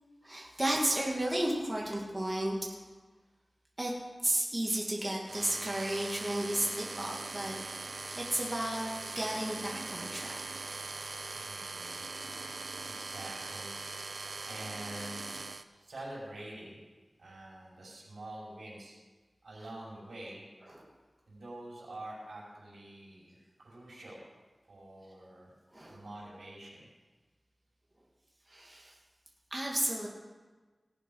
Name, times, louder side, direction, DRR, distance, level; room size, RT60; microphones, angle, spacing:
voice 1, 0.2-2.8 3.8-3.9 4.2-7.5 7.8-8.9 9.2-10.6 20.7-20.9 25.7-26.0 28.5-28.9 29.5-30.1, right 1 dB, 25° right, -2 dB, 2.3 m, -33 dB
sound 1, 5.3-15.6, right 3 dB, 65° right, 0.6 m, -41 dB
voice 2, 11.4-12.5 12.9-13.7 14.4-15.4 15.7-16.8 17.2-19.0 19.4-20.4 21.3-24.2 24.7-25.5 25.9-26.9, right 1 dB, 90° right, -5 dB, 5.2 m, -46 dB
18.0 x 7.4 x 5.6 m, 1.3 s
wide cardioid pair, 70°, 0 cm